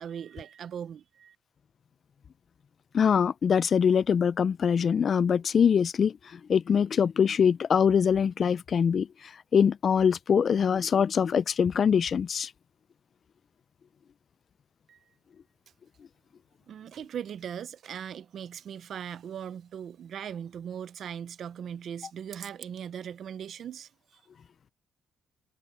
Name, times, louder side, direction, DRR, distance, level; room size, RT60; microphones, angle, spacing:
voice 1, 0.0-1.4 14.9-15.0 16.7-24.2, right 8 dB, 65° right, 0.7 m, -39 dB
voice 2, 2.9-12.5, left 7 dB, 50° left, 0.3 m, -24 dB
cardioid pair, 90°, 0 cm